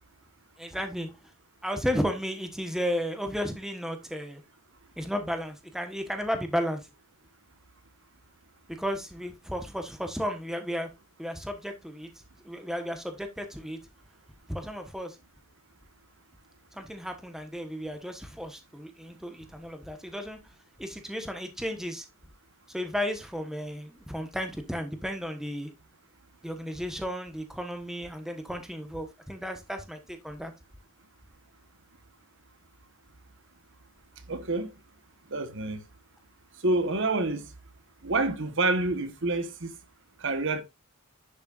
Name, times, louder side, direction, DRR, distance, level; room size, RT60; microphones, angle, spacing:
voice 1, 0.6-1.1 1.6-4.4 5.0-6.9 8.8-10.9 11.2-12.1 12.4-13.8 14.5-15.2 16.7-20.4 20.8-22.1 22.7-25.7 26.4-30.5, equal, ahead, 1.2 m, -33 dB
voice 2, 34.3-34.7 35.3-35.8 36.6-37.5 38.0-39.7 40.2-40.6, right 2 dB, 55° right, 1.3 m, -27 dB
10.5 x 6.5 x 2.5 m
head